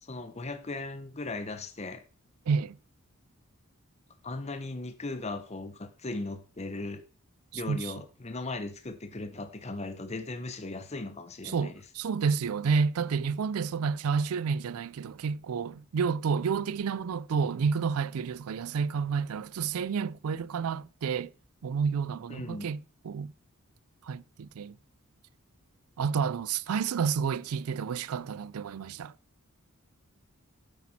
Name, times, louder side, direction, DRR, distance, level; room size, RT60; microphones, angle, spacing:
voice 1, 0.0-2.0 4.2-7.0 7.5-11.7 22.3-22.7, left 2 dB, 30° left, 0.8 m, -37 dB
voice 2, 2.5-2.8 7.5-7.9 11.4-21.3 21.6-23.3 24.0-24.8 26.0-29.1, right 6 dB, 85° right, 0.4 m, -30 dB
8.6 x 8.3 x 4.2 m
head